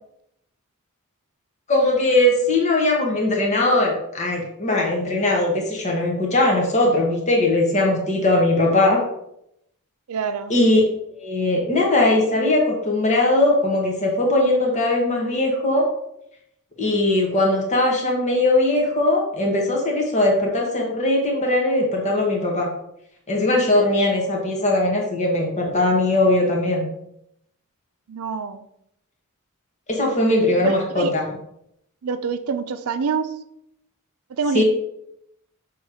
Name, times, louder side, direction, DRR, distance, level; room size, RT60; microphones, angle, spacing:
voice 1, 1.7-9.0 10.5-10.8 11.2-15.9 16.8-22.7 23.3-26.9 29.9-31.3 34.5-34.6, left 2 dB, 30° left, -1 dB, 1.1 m, -20 dB
voice 2, 10.1-10.5 28.1-28.7 30.6-31.1 32.0-33.3 34.3-34.6, right 5 dB, 80° right, 11 dB, 0.5 m, -26 dB
6.6 x 3.1 x 4.8 m, 0.77 s
head